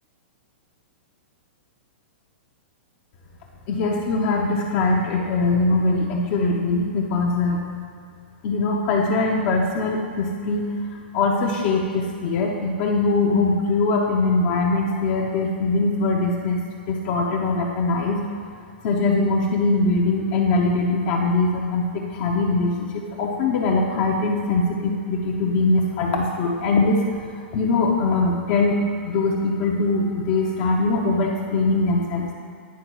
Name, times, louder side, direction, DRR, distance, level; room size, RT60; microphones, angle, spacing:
voice 1, 3.7-7.7 8.4-10.6 11.1-18.2 18.8-27.3 27.5-28.8 29.0-32.3, left 3 dB, 50° left, -1 dB, 0.7 m, -22 dB
9.4 x 3.9 x 4.6 m, 2.2 s
hypercardioid pair, 130°, 6 cm